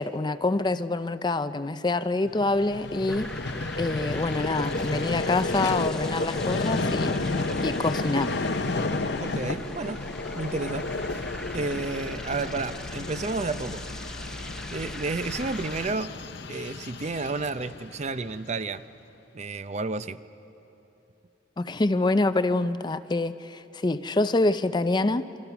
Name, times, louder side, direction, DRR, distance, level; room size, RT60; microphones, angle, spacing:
voice 1, 0.0-3.3 3.8-8.3 21.6-25.3, left 2 dB, 25° left, 0.5 m, -26 dB
Vehicle, 2.3-18.6, left 2 dB, 60° left, 0.8 m, -32 dB
sound 1, 3.1-15.9, left 1 dB, 5° left, 0.8 m, -40 dB
voice 2, 9.2-10.0 10.3-11.3 11.5-13.9 14.7-16.1 16.5-18.8 19.3-20.2, right 3 dB, 35° right, 0.6 m, -31 dB
27.0 x 25.0 x 6.0 m
head